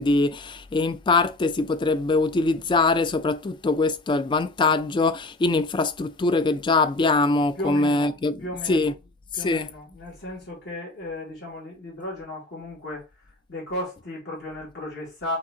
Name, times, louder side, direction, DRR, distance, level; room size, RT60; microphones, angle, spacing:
voice 1, 0.0-8.9 9.3-9.7, left 3 dB, 25° left, 0.3 m, -23 dB
voice 2, 7.6-8.1 8.4-8.9 9.3-15.4, left 1 dB, 60° left, 2.2 m, -35 dB
5.9 x 2.8 x 2.7 m
head